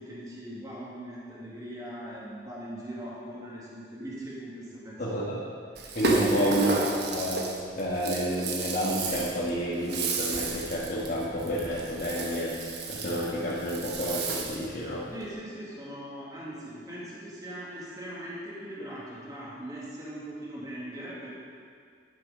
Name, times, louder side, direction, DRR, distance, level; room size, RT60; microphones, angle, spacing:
voice 1, 0.0-5.3 6.1-6.6 15.1-21.3, right 1 dB, 20° right, -7 dB, 2.1 m, -40 dB
voice 2, 5.0-5.4 5.9-6.7 7.1-7.5 7.8-15.0, equal, 55° left, -9 dB, 1.6 m, -30 dB
Rattle (instrument), 5.8-14.7, right 3 dB, 65° right, 1.1 m, -32 dB
11.5 x 6.7 x 5.1 m, 2.1 s
head